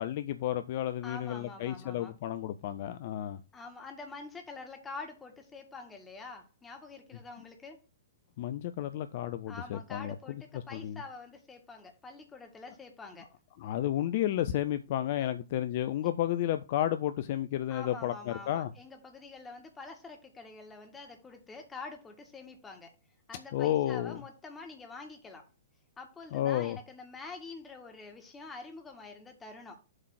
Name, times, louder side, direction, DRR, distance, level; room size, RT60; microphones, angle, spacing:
voice 1, 0.0-3.4 8.4-10.2 10.5-11.0 13.6-18.7 23.5-24.2 26.3-26.8, left 12 dB, 45° left, 0.5 m, -32 dB
voice 2, 1.0-2.1 3.5-7.8 9.5-13.3 15.2-15.3 17.7-22.9 23.3-25.4 26.0-29.8, left 4 dB, 10° left, 1.9 m, -46 dB
8.0 x 3.7 x 5.8 m
figure-of-eight pair, 115°, 0 cm